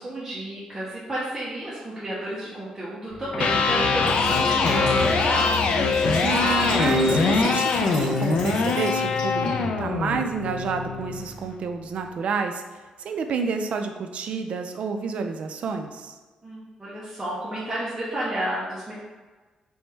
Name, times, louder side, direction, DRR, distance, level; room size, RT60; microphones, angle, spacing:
voice 1, 0.0-5.6 16.4-18.9, right 1 dB, 10° right, -8 dB, 0.6 m, -31 dB
Electric guitar, 3.2-11.3, left 4 dB, 60° left, 0.3 m, -23 dB
sound 1, 4.0-7.4, left 2 dB, 85° left, 0.9 m, -30 dB
Liquid, 4.0-9.5, left 1 dB, 40° left, 1.2 m, -36 dB
voice 2, 6.2-12.6 13.0-16.1, right 5 dB, 55° right, 6 dB, 0.3 m, -29 dB
3.4 x 3.1 x 3.2 m, 1.3 s
wide cardioid pair, 160°, 2 cm